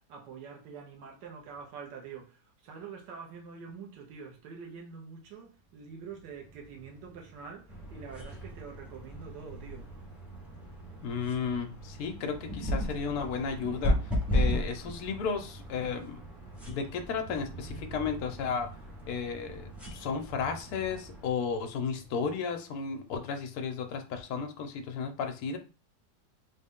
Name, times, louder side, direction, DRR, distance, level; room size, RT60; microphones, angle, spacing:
voice 1, 0.0-9.9, right 6 dB, 85° right, 1.5 m, -46 dB
Wind space nebula, 5.5-22.4, right 3 dB, 65° right, 1.2 m, -52 dB
sound 1, 7.7-21.3, equal, ahead, 0.4 m, -36 dB
voice 2, 11.0-14.0 14.3-16.2 16.7-18.7 19.1-25.6, left 6 dB, 65° left, 1.1 m, -33 dB
3.8 x 2.2 x 3.6 m
omnidirectional pair, 1.9 m